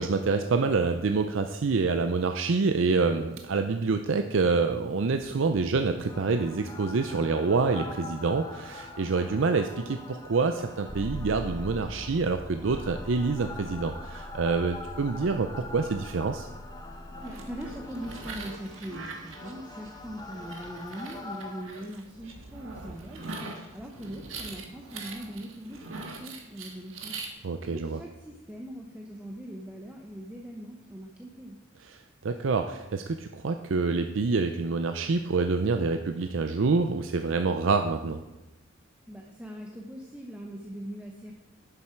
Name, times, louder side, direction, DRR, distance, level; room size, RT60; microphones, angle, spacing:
voice 1, 0.0-16.5 27.4-28.0 31.8-38.2, right 4 dB, 70° right, 7 dB, 0.5 m, -27 dB
sound 1, 5.2-21.6, left 2 dB, 20° left, 0.9 m, -42 dB
voice 2, 17.2-23.2 23.7-27.1 27.7-31.6 39.1-41.3, equal, 5° right, 0 dB, 0.8 m, -41 dB
sound 2, 17.2-27.3, right 3 dB, 85° right, 1.4 m, -42 dB
11.0 x 7.2 x 4.5 m, 1.0 s
head